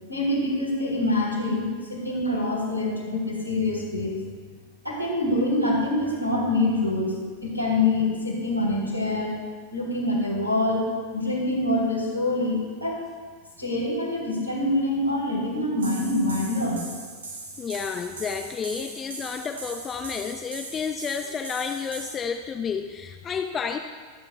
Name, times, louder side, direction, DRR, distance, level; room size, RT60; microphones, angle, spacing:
voice 1, 0.1-4.2 4.8-7.1 7.4-9.3 9.7-10.8 11.1-13.0 13.6-16.8, left 2 dB, 85° right, -3 dB, 3.4 m, -25 dB
sound 1, 15.8-22.2, right 3 dB, 70° right, 1.6 m, -40 dB
voice 2, 17.6-23.8, left 6 dB, 25° left, 6 dB, 0.5 m, -31 dB
26.0 x 8.9 x 2.3 m, 1.5 s
figure-of-eight pair, 90°, 0 cm